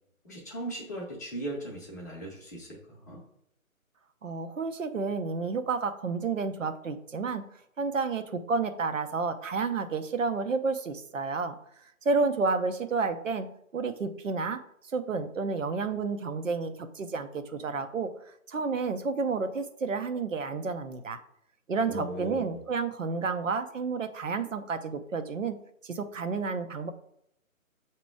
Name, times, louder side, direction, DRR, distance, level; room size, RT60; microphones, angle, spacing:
voice 1, 0.2-3.2 21.8-22.6, right 1 dB, 15° left, -6 dB, 0.8 m, -38 dB
voice 2, 4.2-7.4 7.8-11.5 12.0-13.5 13.7-14.6 14.9-21.2 21.7-25.5 25.8-26.9, right 4 dB, 65° right, 9 dB, 0.8 m, -30 dB
7.4 x 3.0 x 4.7 m, 0.72 s
figure-of-eight pair, 150°, 42 cm